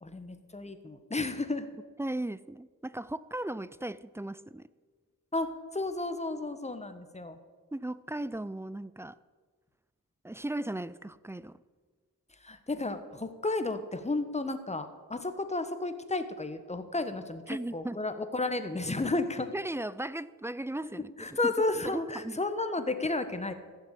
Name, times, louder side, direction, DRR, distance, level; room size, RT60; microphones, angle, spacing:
voice 1, 0.0-1.7 5.3-7.4 12.4-19.5 21.2-23.5, left 2 dB, 20° left, 9 dB, 1.3 m, -32 dB
voice 2, 2.0-4.6 7.7-9.2 10.2-11.5 17.5-18.0 19.5-21.5 21.8-22.4, right 1 dB, 10° right, 17 dB, 0.4 m, -37 dB
15.5 x 6.9 x 8.3 m, 1.5 s
cardioid pair, 80°, 35 cm